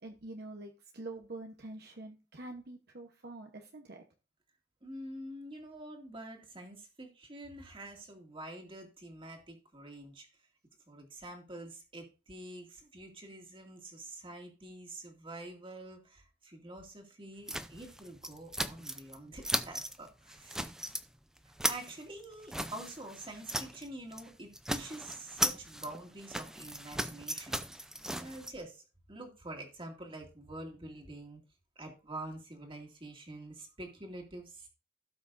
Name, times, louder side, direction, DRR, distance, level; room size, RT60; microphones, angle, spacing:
voice 1, 0.0-4.0, right 2 dB, 60° right, 3 dB, 1.0 m, -46 dB
voice 2, 4.8-10.3 10.9-20.6 21.6-27.6 28.2-31.4 31.8-34.7, right 1 dB, 30° right, 2 dB, 2.2 m, -46 dB
sound 1, 17.5-19.2 19.4-20.0 20.3-21.0 21.4-23.9 24.1-24.3 24.5-28.5, right 1 dB, 5° right, 0.5 m, -37 dB
17.0 x 5.9 x 2.6 m, 0.33 s
head